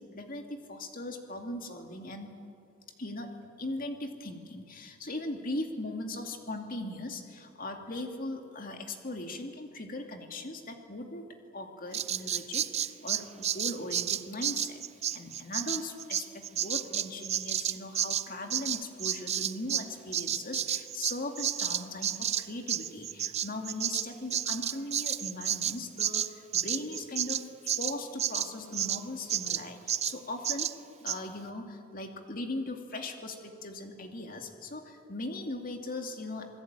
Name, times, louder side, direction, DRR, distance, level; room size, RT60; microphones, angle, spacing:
voice 1, 0.0-2.3 3.0-11.2 11.5-14.8 15.1-30.7 31.0-36.5, left 2 dB, 40° left, 4 dB, 2.5 m, -39 dB
Bird vocalization bird call bird song, 11.9-19.9 20.1-29.0 29.3-29.6 29.9-30.2 30.4-30.7 31.1-31.2, right 10 dB, 30° right, 0.6 m, -31 dB
27.5 x 20.5 x 9.0 m, 2.5 s
head